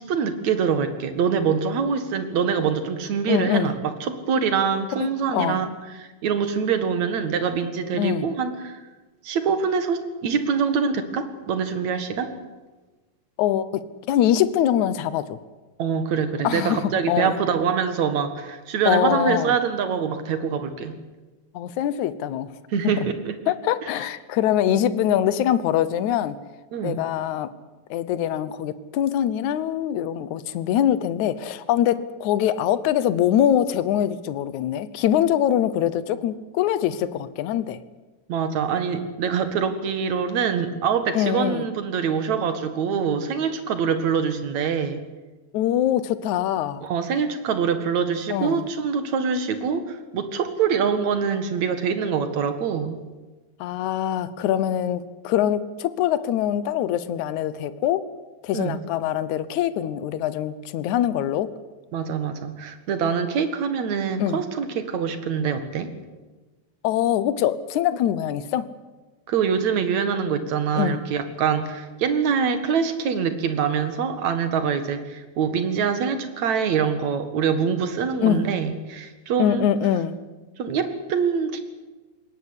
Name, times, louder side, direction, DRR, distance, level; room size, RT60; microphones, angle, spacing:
voice 1, 0.0-8.8 9.2-12.3 15.8-21.0 22.7-23.3 23.8-23.9 24.7-24.8 26.7-27.0 38.3-45.0 46.8-53.0 58.5-58.8 61.9-65.9 69.3-79.7 80.6-81.6, right 6 dB, 55° right, 9 dB, 2.8 m, -24 dB
voice 2, 3.3-3.7 5.0-5.6 7.9-8.3 13.4-15.4 16.4-17.4 18.9-19.5 21.5-22.5 23.0-23.1 23.5-26.4 26.8-27.5 27.9-37.8 41.1-41.6 45.5-46.8 48.3-48.7 53.6-58.1 58.4-61.5 64.2-64.4 66.8-68.7 70.8-71.0 78.2-78.5 79.4-80.2, left 10 dB, 70° left, 15 dB, 2.0 m, -23 dB
21.0 x 18.0 x 9.9 m, 1.2 s
omnidirectional pair, 4.2 m